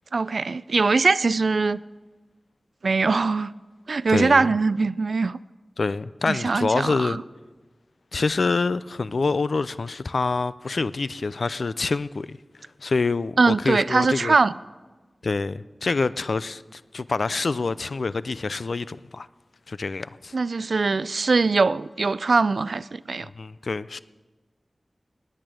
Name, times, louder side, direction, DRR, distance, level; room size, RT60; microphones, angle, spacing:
voice 1, 0.1-1.8 2.8-3.5 3.9-5.4 6.3-7.2 13.4-14.5 20.3-23.3, right 4 dB, 80° right, 0.3 m, -22 dB
voice 2, 4.1-4.5 5.8-7.2 8.1-12.4 12.8-14.3 15.2-19.3 19.7-20.3 23.2-24.0, left 3 dB, 75° left, 0.4 m, -26 dB
19.0 x 8.8 x 6.3 m
wide cardioid pair, 70°, 0 cm